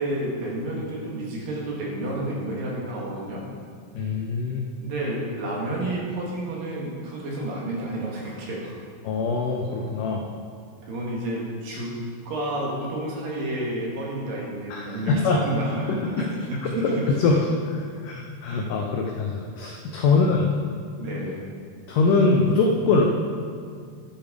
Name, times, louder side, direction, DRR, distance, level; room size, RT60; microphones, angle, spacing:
voice 1, 0.0-3.4 4.8-8.7 10.9-11.9 12.3-17.1 20.1-20.2 21.0-21.5, right 1 dB, 60° right, -4 dB, 3.2 m, -30 dB
voice 2, 4.0-4.6 9.0-10.3 14.7-15.5 16.0-16.3 16.8-16.9 17.2-20.5 21.9-23.1, left 4 dB, 85° left, 1 dB, 1.8 m, -23 dB
10.5 x 8.9 x 5.0 m, 2.1 s
omnidirectional pair, 4.8 m